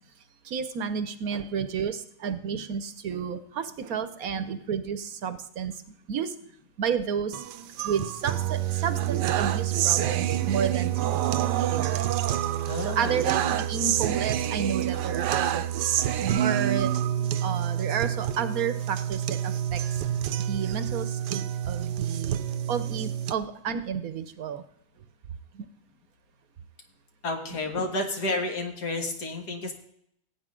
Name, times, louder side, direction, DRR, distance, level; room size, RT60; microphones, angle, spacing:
voice 1, 0.4-5.7 6.1-6.3 6.8-7.4 7.8-12.1 12.8-15.9 16.2-16.9 17.4-20.0 20.5-22.4 22.7-24.6 25.5-25.7, right 7 dB, 65° right, 11 dB, 1.1 m, -31 dB
sound 1, 7.3-23.3, right 11 dB, 85° right, 1.2 m, -27 dB
voice 2, 12.6-13.2 27.2-29.7, left 2 dB, 75° left, 3 dB, 2.2 m, -30 dB
17.0 x 8.6 x 3.7 m, 0.71 s
omnidirectional pair, 1.8 m